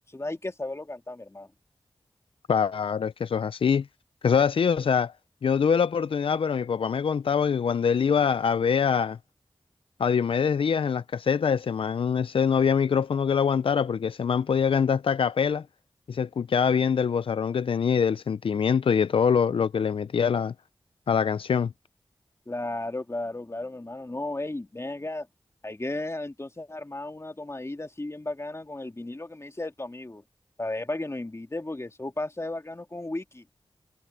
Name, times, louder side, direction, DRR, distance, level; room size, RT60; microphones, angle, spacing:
voice 1, 0.1-1.5 22.5-25.3 25.6-30.2 30.6-33.5, left 2 dB, 30° left, 2.6 m, -34 dB
voice 2, 2.5-3.9 4.2-5.1 5.4-9.2 10.0-15.6 16.1-20.5 21.1-21.7, left 6 dB, 80° left, 0.4 m, -24 dB
cardioid pair, 45°, 9 cm